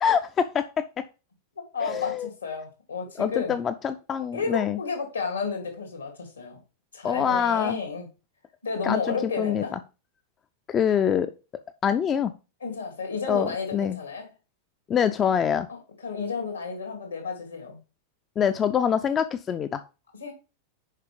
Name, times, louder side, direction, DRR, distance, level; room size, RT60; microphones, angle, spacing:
voice 1, 0.0-0.8 1.8-2.3 3.2-4.8 7.0-7.8 8.8-9.8 10.7-11.3 11.8-12.3 13.3-14.0 14.9-15.7 18.4-19.8, left 8 dB, 25° left, 10 dB, 0.5 m, -25 dB
voice 2, 1.7-3.5 4.3-6.6 6.9-8.1 8.6-9.7 12.6-14.3 15.7-17.8 20.2-20.3, left 5 dB, 75° left, 3 dB, 2.7 m, -32 dB
6.6 x 5.1 x 5.1 m, 0.31 s
figure-of-eight pair, 90°, 0 cm